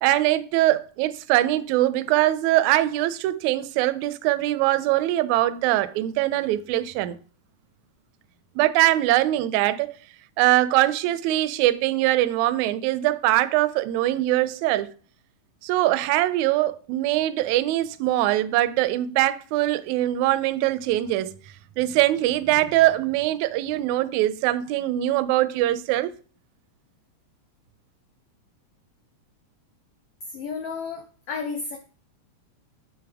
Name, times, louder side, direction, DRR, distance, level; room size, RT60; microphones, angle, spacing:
voice 1, 0.0-7.2 8.5-9.9 10.4-14.9 15.6-21.3 21.8-26.1, right 15 dB, 80° right, 1.7 m, -22 dB
voice 2, 30.3-31.8, left 5 dB, 85° left, 1.3 m, -32 dB
10.5 x 3.7 x 3.5 m
omnidirectional pair, 3.5 m